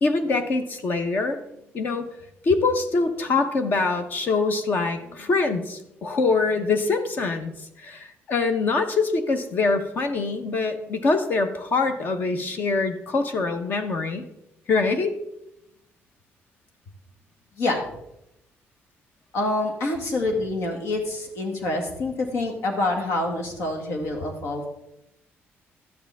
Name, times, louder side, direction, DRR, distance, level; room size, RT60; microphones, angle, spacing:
voice 1, 0.0-1.4 1.7-2.1 2.4-14.2 14.7-15.1, left 3 dB, 45° left, 8 dB, 0.9 m, -24 dB
voice 2, 19.3-24.7, left 2 dB, 75° left, 2 dB, 1.9 m, -26 dB
13.0 x 10.0 x 3.5 m, 0.84 s
cardioid pair, 165°, 5 cm